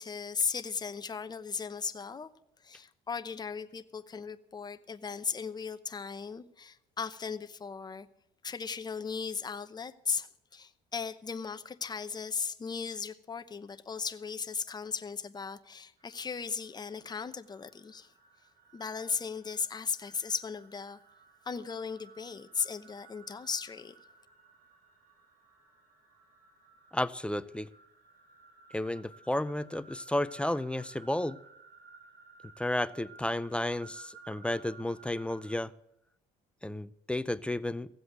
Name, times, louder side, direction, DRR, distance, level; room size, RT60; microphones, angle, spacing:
voice 1, 0.0-2.3 2.6-8.1 8.4-18.1 18.7-21.0 21.4-23.9, left 5 dB, 25° left, 0.9 m, -37 dB
sound 1, 16.0-35.6, right 4 dB, 60° right, 7.9 m, -57 dB
voice 2, 26.9-27.7 28.7-31.4 32.6-35.7 36.6-37.9, left 1 dB, 5° left, 0.5 m, -32 dB
16.0 x 7.8 x 8.1 m
cardioid pair, 110°, 17 cm